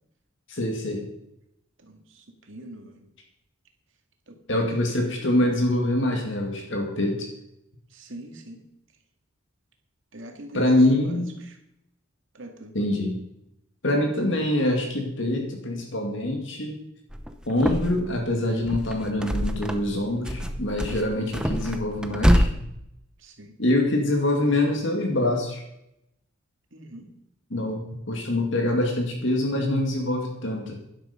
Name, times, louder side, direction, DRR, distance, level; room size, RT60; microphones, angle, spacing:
voice 1, 0.5-1.1 4.5-7.3 10.5-11.3 12.7-13.2 13.8-16.8 17.5-22.5 23.6-25.6 27.5-30.8, left 1 dB, 60° left, 2 dB, 2.2 m, -25 dB
voice 2, 1.8-3.1 4.3-4.9 7.9-8.6 10.1-11.6 12.3-12.7 20.9-21.1 23.2-23.6 26.7-27.1, right 1 dB, 65° right, 4 dB, 2.3 m, -43 dB
sound 1, 17.1-18.1 18.5-19.9 20.2-22.5, equal, 5° right, 0.8 m, -25 dB
11.5 x 11.5 x 5.2 m, 0.82 s
head